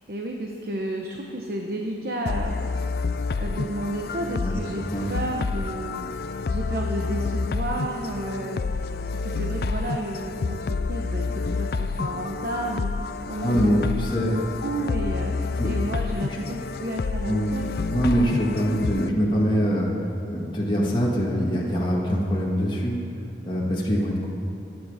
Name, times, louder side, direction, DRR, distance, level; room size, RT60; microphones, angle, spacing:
voice 1, 0.0-2.9 3.4-4.8 5.1-12.9 13.3-17.6 17.9-18.0, right 1 dB, 55° right, 1 dB, 1.0 m, -32 dB
sound 1, 2.3-19.1, left 4 dB, 55° left, 0.4 m, -29 dB
voice 2, 13.4-14.3 15.6-15.7 16.3-16.4 17.3-17.5 17.9-20.0 20.3-23.0 23.5-24.3, equal, 25° left, -4 dB, 2.0 m, -23 dB
23.5 x 9.4 x 5.0 m, 2.7 s
head